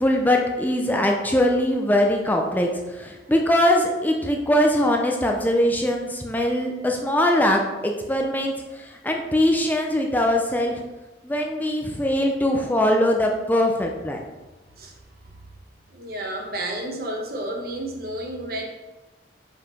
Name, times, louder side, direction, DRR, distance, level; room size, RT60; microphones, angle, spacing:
voice 1, 0.0-10.8 11.2-14.2, left 1 dB, 10° left, 1 dB, 0.6 m, -22 dB
voice 2, 15.9-18.6, right 1 dB, 55° right, 1 dB, 1.2 m, -31 dB
5.5 x 4.8 x 5.1 m, 1.1 s
head